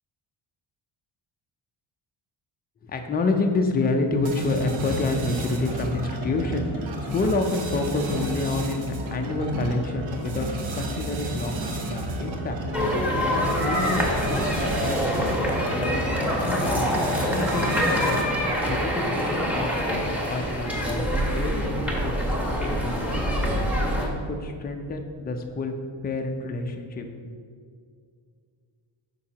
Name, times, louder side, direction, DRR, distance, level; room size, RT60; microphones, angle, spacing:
voice 1, 2.8-10.5 10.7-12.6 13.1-16.9 17.2-18.2 18.6-21.7 22.0-22.9 23.4-25.7 26.0-27.1, left 3 dB, 20° left, 4 dB, 0.4 m, -29 dB
sound 1, 4.2-18.5, right 1 dB, 70° right, 1.0 m, -32 dB
sound 2, 12.7-24.1, equal, 5° right, 0.9 m, -25 dB
8.5 x 5.9 x 2.8 m, 2.2 s
cardioid pair, 155°, 49 cm